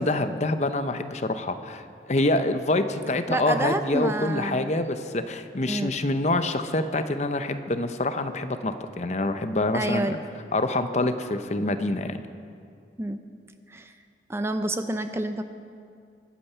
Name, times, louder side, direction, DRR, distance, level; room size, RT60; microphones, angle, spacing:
voice 1, 0.0-1.8 2.1-10.2 10.5-12.2, left 2 dB, 40° left, 9 dB, 0.7 m, -26 dB
voice 2, 3.3-4.7 5.7-5.9 9.7-10.2 13.0-13.2 13.7-13.9 14.3-15.4, right 1 dB, 15° right, 8 dB, 0.5 m, -28 dB
24.0 x 8.9 x 5.6 m, 2.3 s
head